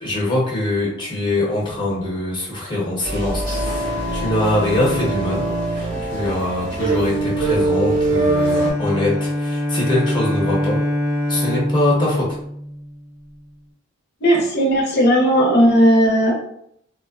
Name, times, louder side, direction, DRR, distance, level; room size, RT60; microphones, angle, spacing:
voice 1, 0.0-5.4 5.7-10.8 11.3-12.2, left 1 dB, 25° left, -5 dB, 0.9 m, -23 dB
sound 1, 3.0-8.7, right 2 dB, 50° right, 1.4 m, -22 dB
Bowed string instrument, 8.1-13.3, left 1 dB, 15° right, 0.3 m, -24 dB
voice 2, 14.2-16.3, equal, 50° left, -1 dB, 0.6 m, -15 dB
2.8 x 2.0 x 2.3 m, 0.71 s
head